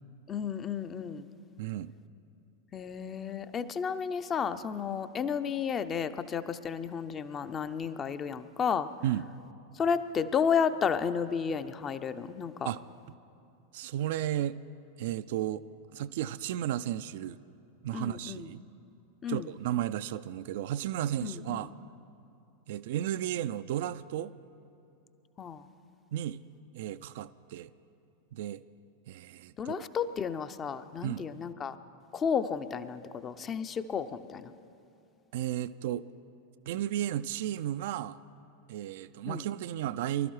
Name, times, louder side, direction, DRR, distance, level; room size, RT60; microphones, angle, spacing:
voice 1, 0.3-1.3 2.7-8.9 9.7-12.7 17.9-18.5 19.2-19.5 21.2-21.6 25.4-25.7 29.6-31.8 32.1-34.5 39.3-39.5, left 7 dB, 25° left, 12 dB, 0.5 m, -32 dB
voice 2, 1.6-1.9 9.0-9.2 12.6-12.8 13.7-14.6 15.0-15.6 15.9-17.4 17.8-18.6 19.3-21.7 22.7-24.3 26.1-26.4 26.7-27.7 28.3-28.6 29.1-29.8 31.0-31.3 35.3-36.0 36.7-38.2 38.7-40.3, right 12 dB, 50° right, 13 dB, 0.3 m, -33 dB
25.0 x 12.5 x 3.1 m, 2.7 s
figure-of-eight pair, 90°, 0 cm